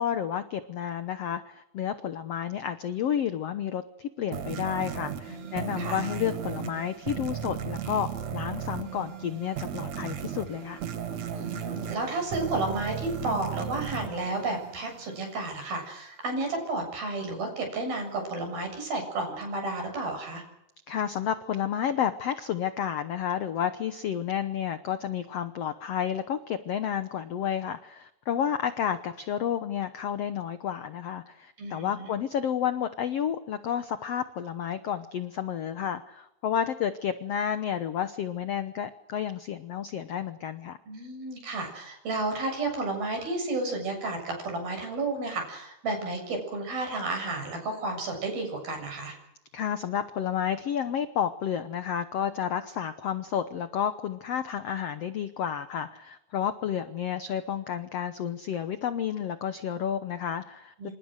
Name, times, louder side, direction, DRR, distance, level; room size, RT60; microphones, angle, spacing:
voice 1, 0.0-10.8 20.9-40.8 49.5-60.9, left 9 dB, 80° left, 11 dB, 1.4 m, -31 dB
sound 1, 4.3-15.1, right 8 dB, 55° right, 2.4 m, -36 dB
voice 2, 5.3-6.0 11.3-20.4 31.6-32.1 40.9-49.2 60.8-60.9, right 2 dB, 75° right, 3 dB, 9.2 m, -32 dB
27.5 x 26.0 x 6.5 m, 0.87 s
omnidirectional pair, 4.3 m